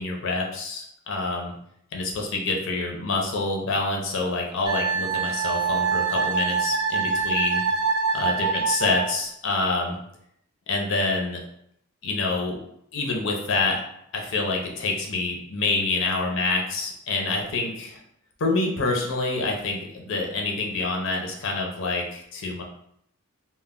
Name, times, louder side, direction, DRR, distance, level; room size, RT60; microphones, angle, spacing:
voice 1, 0.0-1.5 1.9-7.6 8.1-10.0 10.7-11.4 12.0-12.6 12.9-13.8 14.1-18.0 18.4-22.6, left 3 dB, 65° left, 1 dB, 0.5 m, -27 dB
Wind instrument woodwind instrument, 4.7-9.1, right 5 dB, 25° right, 0.6 m, -25 dB
2.1 x 2.1 x 3.5 m, 0.73 s
head